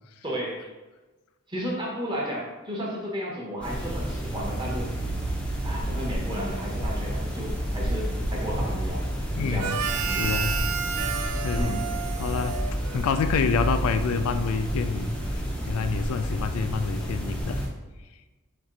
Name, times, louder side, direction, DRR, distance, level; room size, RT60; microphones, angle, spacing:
voice 1, 0.2-0.7 1.5-4.9 5.6-9.0 9.4-9.7 10.1-10.3 11.5-11.8, equal, 20° right, -3 dB, 0.9 m, -33 dB
sound 1, 3.6-17.7, equal, 5° left, 0.6 m, -30 dB
voice 2, 9.3-9.8 10.1-10.6 11.4-11.7 12.2-12.6 12.9-15.2 15.7-17.6, left 5 dB, 75° left, 10 dB, 0.3 m, -27 dB
Harmonica, 9.6-13.4, right 7 dB, 85° right, 0.4 m, -31 dB
4.3 x 3.0 x 3.9 m, 1.2 s
head